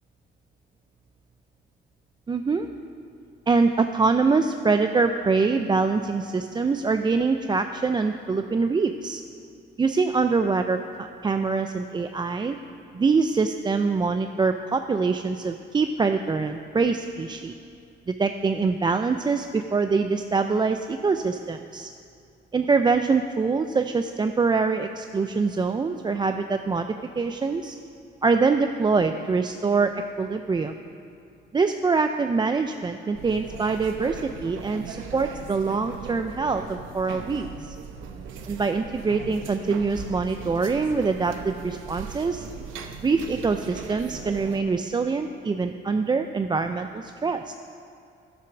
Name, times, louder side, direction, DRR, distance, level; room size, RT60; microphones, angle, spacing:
voice 1, 2.3-2.7 3.5-9.2 9.8-12.6 12.9-17.5 18.1-21.9 22.5-26.9 27.2-27.8 28.2-30.7 31.5-37.8 38.5-42.5 43.0-47.5, right 4 dB, 20° right, 7 dB, 0.4 m, -24 dB
sound 1, 33.1-44.6, right 6 dB, 90° right, 0.8 m, -39 dB
10.5 x 7.7 x 6.0 m, 2.6 s
cardioid pair, 90°, 20 cm